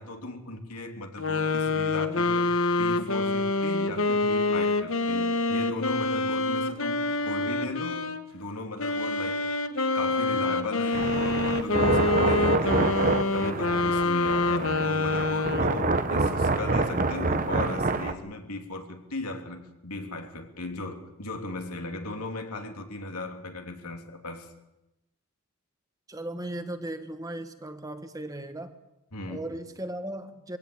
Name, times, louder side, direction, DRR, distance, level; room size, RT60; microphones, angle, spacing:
voice 1, 0.0-9.5 9.9-24.5 29.1-29.5, left 2 dB, 90° left, 3.1 m, -37 dB
sound 1, 1.2-8.2 8.8-16.0, left 3 dB, 60° left, 1.4 m, -26 dB
sound 2, 10.9-18.1, right 3 dB, 35° right, 1.1 m, -26 dB
voice 2, 26.1-28.8 29.3-30.6, right 1 dB, 15° right, 1.3 m, -37 dB
23.5 x 17.0 x 8.6 m
head